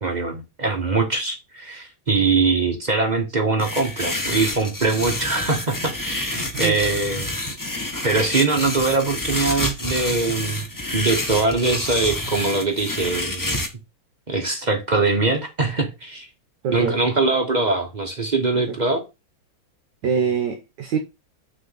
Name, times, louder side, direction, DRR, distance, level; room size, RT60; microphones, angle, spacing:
voice 1, 0.0-7.3 8.0-10.6 10.9-13.6 14.3-16.3 16.7-19.0, right 3 dB, 45° right, 0.5 m, -22 dB
sound 1, 3.6-13.7, left 1 dB, 30° left, 0.4 m, -28 dB
voice 2, 16.6-17.0 18.5-18.8 20.0-21.0, right 6 dB, 60° right, 1.4 m, -24 dB
6.4 x 3.4 x 5.6 m
omnidirectional pair, 2.3 m